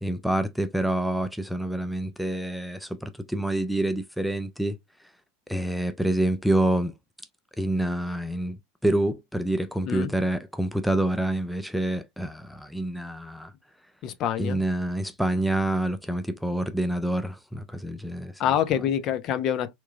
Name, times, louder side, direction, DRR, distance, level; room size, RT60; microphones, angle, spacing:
voice 1, 0.0-4.8 5.5-6.9 7.6-13.5 14.4-18.4, right 1 dB, ahead, 0.4 m, -27 dB
voice 2, 14.0-14.6 18.4-19.7, left 9 dB, 40° left, 0.6 m, -26 dB
3.5 x 3.0 x 2.3 m
figure-of-eight pair, 85°, 0 cm